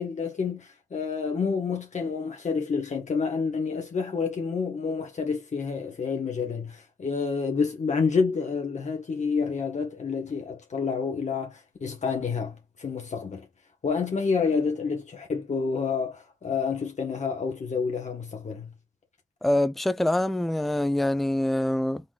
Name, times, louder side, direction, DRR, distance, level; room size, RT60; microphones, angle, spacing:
voice 1, 0.0-13.4 13.8-18.7, left 5 dB, 50° left, 1.4 m, -29 dB
voice 2, 19.4-22.0, left 1 dB, ahead, 0.5 m, -25 dB
4.1 x 3.6 x 2.5 m
cardioid pair, 65°, 16 cm